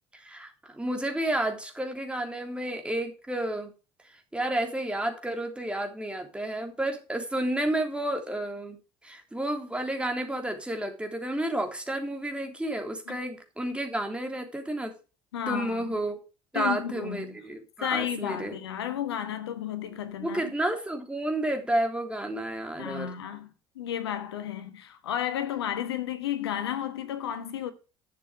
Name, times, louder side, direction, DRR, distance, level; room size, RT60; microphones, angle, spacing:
voice 1, 0.1-3.7 4.3-8.8 9.0-14.9 15.5-16.2 16.5-18.6 20.2-23.1, right 1 dB, 10° right, 3.2 m, -31 dB
voice 2, 15.3-15.9 16.5-17.4 17.8-20.4 22.8-23.5 23.7-27.7, left 10 dB, 90° left, 1.3 m, -32 dB
11.0 x 6.8 x 5.0 m
hypercardioid pair, 65°, 13 cm